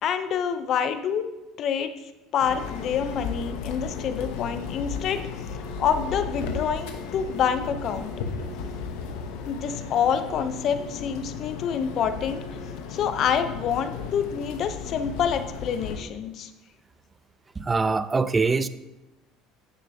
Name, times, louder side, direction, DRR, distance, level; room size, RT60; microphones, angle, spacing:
voice 1, 0.0-1.2 1.6-1.9 2.3-5.3 5.8-8.1 9.5-12.4 12.9-16.5, left 7 dB, 50° left, 10 dB, 0.6 m, -27 dB
sound 1, 2.4-16.0, left 5 dB, 80° left, 0.8 m, -35 dB
voice 2, 17.6-18.7, right 4 dB, 20° right, 14 dB, 0.4 m, -23 dB
9.4 x 6.6 x 2.7 m, 1.0 s
supercardioid pair, 105°, 0 cm